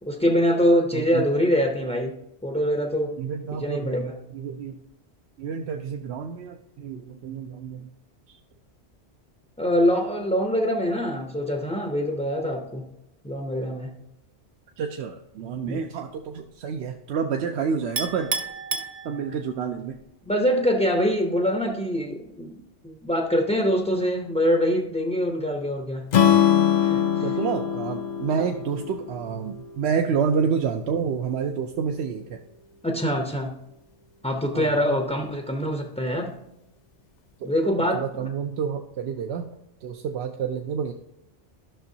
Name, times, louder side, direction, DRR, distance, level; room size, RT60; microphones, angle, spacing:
voice 1, 0.0-2.1 2.4-3.1 3.6-4.1 9.6-12.9 13.2-13.9 15.7-15.8 20.2-22.6 22.8-26.1 26.8-27.3 28.4-28.5 32.8-33.6 34.2-36.3 37.4-38.3, equal, 10° left, 2 dB, 0.5 m, -24 dB
voice 2, 0.9-1.2 3.2-4.1 4.3-4.8 5.4-7.9 8.3-8.4 14.8-18.3 19.0-19.9 27.2-32.4 34.5-35.0 37.4-37.5 37.9-39.5 39.8-40.9, right 6 dB, 75° right, 4 dB, 0.8 m, -29 dB
Chink clink, 18.0-19.6, right 4 dB, 40° right, 0.7 m, -31 dB
Strum, 26.1-30.3, left 9 dB, 50° left, 0.6 m, -23 dB
12.5 x 6.1 x 2.7 m, 0.87 s
omnidirectional pair, 1.1 m